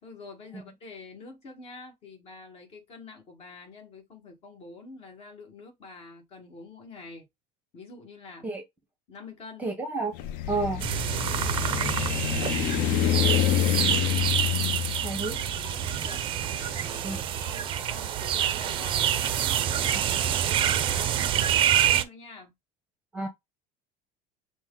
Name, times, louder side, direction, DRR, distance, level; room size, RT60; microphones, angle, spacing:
voice 1, 0.0-7.3 7.7-8.5 9.1-9.7 10.5-10.7 11.1-14.0 15.7-22.5, left 3 dB, 35° left, 1.6 m, -46 dB
voice 2, 9.6-10.1 10.5-10.8 15.0-15.4 17.0-17.2 19.9-20.2 23.1-23.3, right 3 dB, 10° right, 0.9 m, -31 dB
sound 1, 10.1-17.3, left 12 dB, 55° left, 0.5 m, -28 dB
sound 2, 10.8-22.0, right 10 dB, 30° right, 0.5 m, -27 dB
6.1 x 2.1 x 3.7 m
cardioid pair, 155°, 17 cm